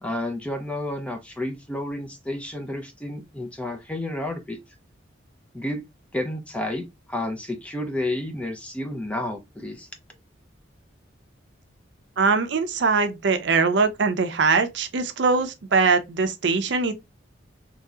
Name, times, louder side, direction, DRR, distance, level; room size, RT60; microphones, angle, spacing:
voice 1, 0.0-4.6 5.5-5.8 6.1-9.9, left 1 dB, 5° left, 0.4 m, -31 dB
voice 2, 12.2-16.9, right 4 dB, 65° right, 0.5 m, -22 dB
3.0 x 2.7 x 2.3 m
head